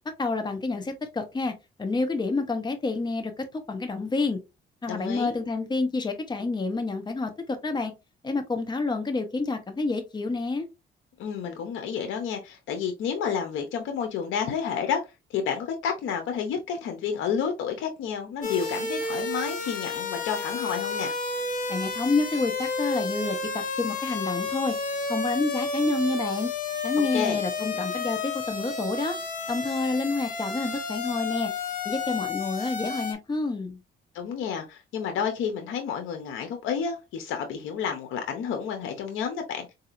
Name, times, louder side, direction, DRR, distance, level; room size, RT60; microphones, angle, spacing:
voice 1, 0.2-4.4 4.8-7.9 8.2-10.6 21.7-24.8 25.1-26.5 26.8-29.2 29.5-31.5 31.8-33.8, left 3 dB, 20° left, 0.9 m, -28 dB
voice 2, 4.8-5.3 11.2-21.1 27.1-27.4 34.1-39.7, left 7 dB, 80° left, 0.7 m, -30 dB
sound 1, 18.4-33.1, left 4 dB, 40° left, 1.2 m, -31 dB
4.0 x 2.7 x 2.4 m
cardioid pair, 90°, 20 cm